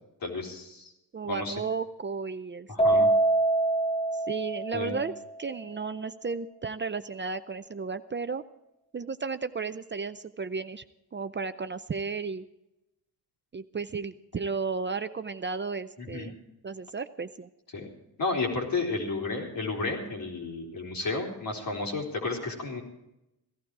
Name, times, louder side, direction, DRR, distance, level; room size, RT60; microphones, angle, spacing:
voice 1, 0.2-0.9 1.2-1.6 2.7-3.1 4.7-4.9 16.0-16.3 17.7-17.9 18.2-22.8, left 3 dB, 65° left, 0 dB, 4.0 m, -32 dB
voice 2, 1.1-3.1 4.1-8.4 8.9-10.8 11.1-12.5 13.5-16.3 16.6-17.5, right 4 dB, 30° right, 11 dB, 0.5 m, -34 dB
Keyboard (musical), 2.8-5.3, right 2 dB, 15° left, 0.7 m, -25 dB
17.0 x 15.0 x 4.7 m, 0.90 s
wide cardioid pair, 165°, 37 cm